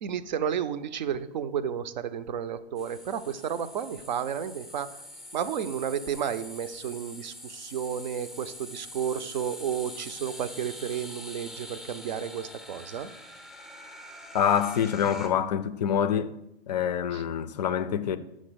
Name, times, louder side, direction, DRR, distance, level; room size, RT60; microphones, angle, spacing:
voice 1, 0.0-5.0 5.3-13.1 17.1-17.2, right 8 dB, 45° right, 0.5 m, -32 dB
sound 1, 2.8-15.3, left 1 dB, ahead, 0.6 m, -44 dB
voice 2, 14.3-16.3 16.7-18.2, left 8 dB, 40° left, 0.5 m, -26 dB
6.3 x 5.3 x 6.7 m
hypercardioid pair, 150°, 32 cm